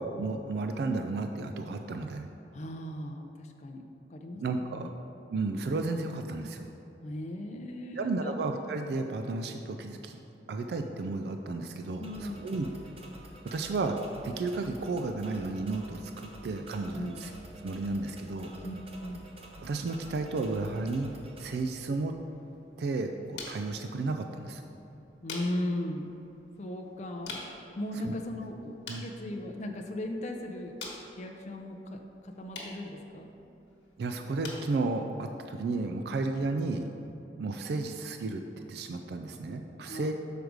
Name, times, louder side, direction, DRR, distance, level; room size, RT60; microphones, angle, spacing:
voice 1, 0.0-2.3 4.4-4.9 5.3-6.7 8.0-10.2 10.5-12.7 13.4-14.0 14.2-17.3 17.6-18.5 19.6-21.1 21.4-22.1 22.8-24.6 28.0-28.1 28.9-29.0 34.0-36.9 37.4-40.1, right 3 dB, 60° right, 6 dB, 0.3 m, -33 dB
voice 2, 2.5-4.4 4.7-4.9 7.0-8.4 12.0-12.5 16.9-17.3 18.6-19.3 25.2-26.2 26.6-30.7 31.2-33.3 39.8-40.1, left 1 dB, 40° left, 2 dB, 0.4 m, -37 dB
sound 1, 12.0-21.6, right 1 dB, 30° right, 0.7 m, -49 dB
sound 2, 22.1-37.2, left 3 dB, 75° left, 1.3 m, -49 dB
6.4 x 5.0 x 4.7 m, 2.9 s
head